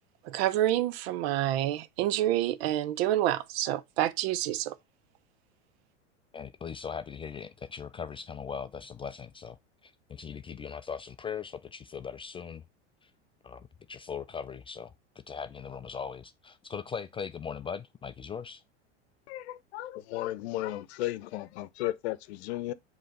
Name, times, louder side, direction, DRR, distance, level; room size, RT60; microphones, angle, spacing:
voice 1, 0.2-4.8, right 13 dB, 65° right, 0.8 m, -28 dB
voice 2, 6.3-12.6 13.0-13.1 13.4-14.9 15.3-18.6, left 6 dB, 15° left, 0.3 m, -39 dB
voice 3, 19.3-22.7, left 15 dB, 70° left, 0.8 m, -35 dB
7.6 x 3.1 x 5.3 m
hypercardioid pair, 100°, 34 cm